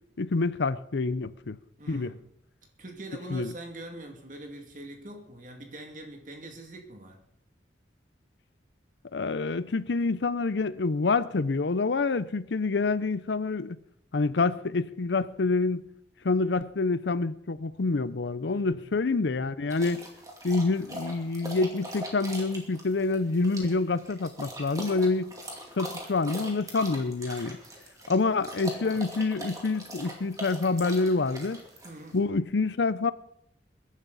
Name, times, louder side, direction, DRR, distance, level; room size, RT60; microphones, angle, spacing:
voice 1, 0.2-1.6 1.9-2.1 3.3-3.5 9.1-13.8 14.1-15.8 16.2-20.0 20.4-25.3 25.8-27.6 28.1-31.6 32.1-33.1, left 3 dB, 80° left, 0.6 m, -27 dB
voice 2, 1.8-2.3 2.8-7.2 18.5-19.0 28.3-28.4 28.8-29.0 31.8-32.2, right 1 dB, 45° right, 2.3 m, -44 dB
sound 1, 19.7-32.2, right 1 dB, 20° right, 2.5 m, -41 dB
21.5 x 11.0 x 4.1 m
head